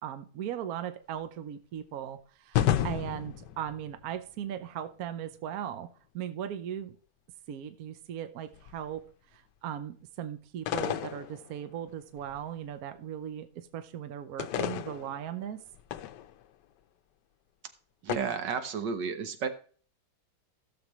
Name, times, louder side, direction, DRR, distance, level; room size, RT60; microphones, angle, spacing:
voice 1, 0.0-5.9 6.1-6.9 7.5-9.0 9.3-15.6, right 10 dB, 65° right, 10 dB, 1.2 m, -38 dB
sound 1, 2.5-4.2 8.5-8.9 10.7-11.9 12.2-12.4 14.4-16.4 18.1-18.2, left 11 dB, 80° left, 1.3 m, -32 dB
voice 2, 18.0-19.5, right 6 dB, 85° right, 8 dB, 1.8 m, -32 dB
16.0 x 6.9 x 3.1 m, 0.43 s
omnidirectional pair, 1.8 m